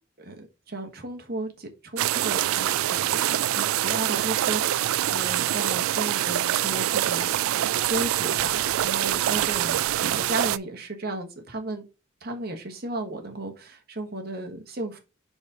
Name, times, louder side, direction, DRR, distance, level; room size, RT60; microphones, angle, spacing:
voice 1, 0.2-11.8 12.2-15.0, right 2 dB, 50° right, 3 dB, 1.3 m, -34 dB
sound 1, 2.0-10.6, right 12 dB, 90° right, 0.3 m, -25 dB
4.9 x 4.1 x 4.9 m, 0.29 s
head